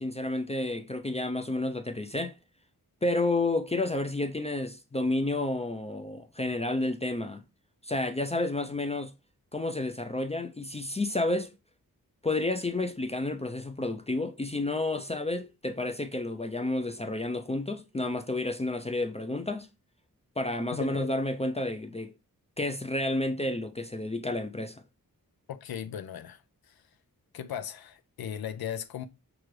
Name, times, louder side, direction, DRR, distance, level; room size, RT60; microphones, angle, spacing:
voice 1, 0.0-2.3 3.0-7.4 7.8-9.1 9.5-11.5 12.2-19.7 20.4-22.1 22.6-24.8, left 2 dB, 20° left, 0.4 m, -30 dB
voice 2, 20.7-21.1 25.5-26.9 27.3-29.1, left 9 dB, 80° left, 0.5 m, -38 dB
6.0 x 2.5 x 3.1 m
wide cardioid pair, 95°, 36 cm